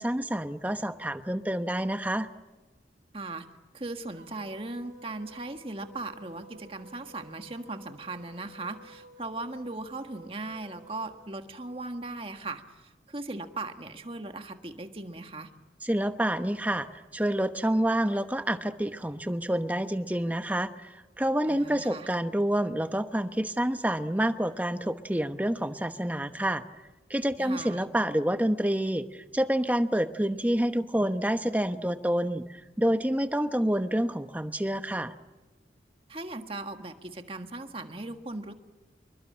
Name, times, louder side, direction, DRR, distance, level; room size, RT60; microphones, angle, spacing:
voice 1, 0.0-2.3 15.8-26.6 27.1-35.2, right 1 dB, 10° right, 9 dB, 0.9 m, -28 dB
voice 2, 3.1-3.5 3.7-15.5 21.5-22.1 27.4-27.9 36.1-38.5, right 2 dB, 30° right, 6 dB, 1.7 m, -38 dB
sound 1, 4.1-11.3, right 1 dB, 50° right, 4.7 m, -53 dB
27.5 x 23.5 x 8.7 m, 1.1 s
head